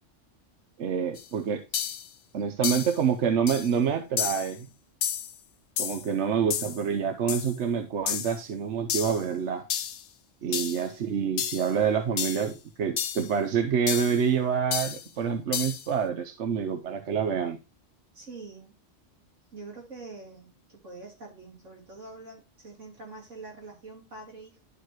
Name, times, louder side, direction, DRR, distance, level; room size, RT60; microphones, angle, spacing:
voice 1, 0.8-1.6 2.3-4.7 5.8-9.6 10.4-17.6, right 7 dB, 70° right, 1.1 m, -27 dB
sound 1, 1.2-1.3 1.7-2.1 2.6-3.0 3.5-3.7 4.2-4.5 5.0-5.3 5.8-6.1 6.5-6.8 7.3-7.5 8.1-8.4 8.9-9.2 9.7-10.0 10.5-10.8 11.4-11.7 12.2-12.5 13.0-13.3 13.9-14.2 14.7-15.1 15.5-15.9, left 9 dB, 70° left, 1.0 m, -31 dB
voice 2, 18.1-18.7 19.5-24.6, right 3 dB, 85° right, 4.3 m, -45 dB
11.5 x 4.6 x 3.0 m
omnidirectional pair, 1.2 m